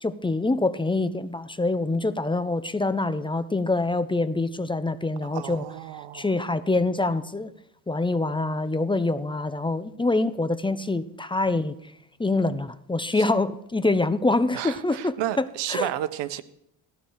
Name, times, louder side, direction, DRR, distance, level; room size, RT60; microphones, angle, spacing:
voice 1, 0.0-5.6 6.1-7.5 7.9-11.7 12.2-15.9, left 2 dB, 10° left, 13 dB, 0.8 m, -25 dB
voice 2, 5.3-6.2 13.2-13.3 14.5-16.4, right 13 dB, 85° right, 12 dB, 1.3 m, -32 dB
18.0 x 15.5 x 4.8 m, 0.77 s
cardioid pair, 115°, 42 cm